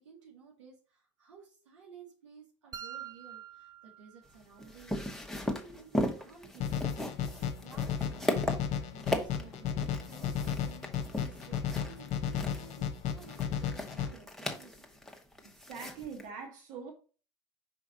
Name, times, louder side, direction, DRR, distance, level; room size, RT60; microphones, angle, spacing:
voice 1, 0.0-6.7 7.2-8.2 8.8-15.0, right 6 dB, 80° right, 1.9 m, -55 dB
sound 1, 2.7-4.7, right 9 dB, 25° right, 0.5 m, -46 dB
sound 2, 4.3-16.2, left 1 dB, ahead, 1.3 m, -37 dB
sound 3, 6.6-14.1, left 8 dB, 50° left, 1.1 m, -34 dB
voice 2, 15.4-16.9, right 5 dB, 55° right, 2.0 m, -43 dB
5.1 x 4.8 x 4.1 m
hypercardioid pair, 70°, 15 cm